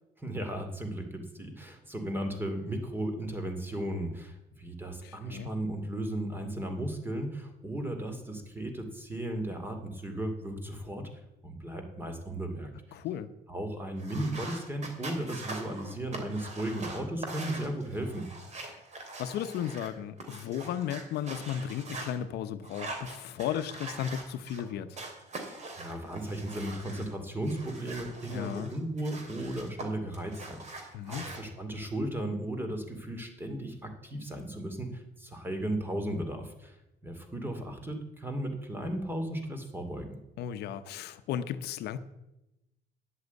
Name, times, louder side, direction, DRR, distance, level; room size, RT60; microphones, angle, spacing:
voice 1, 0.2-11.1 11.4-12.7 13.5-18.3 25.4-36.7 37.0-40.1, right 1 dB, 10° right, 6 dB, 2.4 m, -35 dB
voice 2, 5.0-5.5 12.9-13.3 18.7-18.8 19.2-25.0 28.3-28.7 30.9-31.3 40.4-42.0, left 9 dB, 75° left, 11 dB, 0.8 m, -35 dB
sound 1, 14.0-22.1 22.6-24.6 24.9-27.1 27.4-29.9 30.1-31.4, right 2 dB, 40° right, 3.0 m, -43 dB
10.0 x 8.0 x 8.2 m, 0.92 s
cardioid pair, 110°, 17 cm